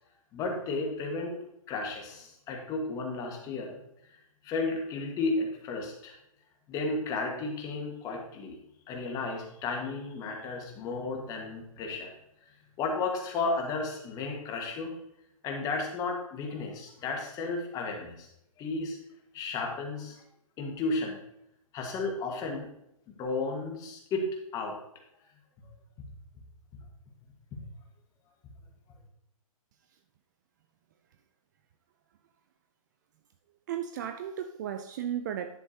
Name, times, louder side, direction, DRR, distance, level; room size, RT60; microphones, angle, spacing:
voice 1, 0.3-1.4 1.7-3.8 4.4-6.1 6.7-8.6 8.9-12.1 12.8-15.0 15.4-18.3 18.6-19.0 19.3-20.2 20.6-21.2 21.7-22.7 23.2-24.8 25.6-25.7, left 3 dB, 20° left, 1.5 m, -33 dB
voice 2, 33.7-35.6, right 9 dB, 30° right, 0.4 m, -35 dB
10.5 x 7.4 x 2.8 m
hypercardioid pair, 145°, 18 cm